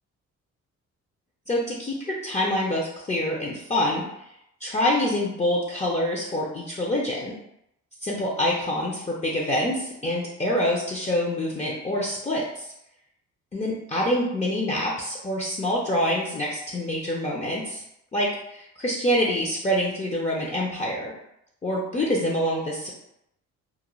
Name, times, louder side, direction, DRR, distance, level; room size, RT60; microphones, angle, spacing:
voice 1, 1.5-4.0 4.6-7.3 8.0-12.7 13.5-17.8 18.1-21.1 21.6-22.9, left 1 dB, 25° left, -4 dB, 0.5 m, -26 dB
2.5 x 2.0 x 3.0 m, 0.79 s
cardioid pair, 90°, 30 cm